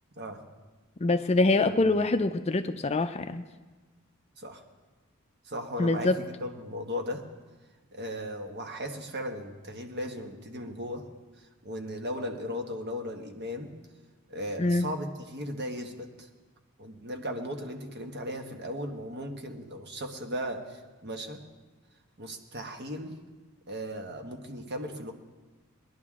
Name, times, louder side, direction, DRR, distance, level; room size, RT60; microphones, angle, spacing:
voice 1, 0.2-0.5 1.6-1.8 4.4-4.6 5.4-7.2 7.9-11.1 11.4-13.7 14.3-16.3 16.8-21.4 22.2-23.2 23.7-25.1, equal, 50° right, 4 dB, 1.4 m, -37 dB
voice 2, 1.0-3.4 5.8-6.2 14.6-14.9, left 2 dB, 30° left, 8 dB, 0.4 m, -25 dB
21.5 x 11.0 x 3.7 m, 1.3 s
head